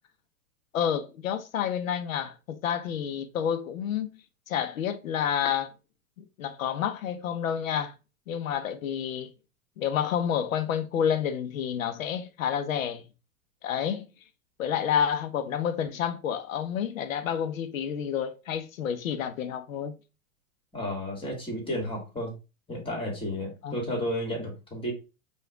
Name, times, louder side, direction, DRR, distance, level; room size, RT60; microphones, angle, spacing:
voice 1, 0.7-4.1 4.5-5.7 6.2-7.9 8.3-9.3 9.8-13.0 13.6-14.1 14.6-19.9 23.6-24.1, left 8 dB, 70° left, 0.7 m, -29 dB
voice 2, 20.7-22.4 22.7-24.9, equal, 10° left, 1.8 m, -32 dB
4.8 x 2.5 x 3.4 m
hypercardioid pair, 105°, 42 cm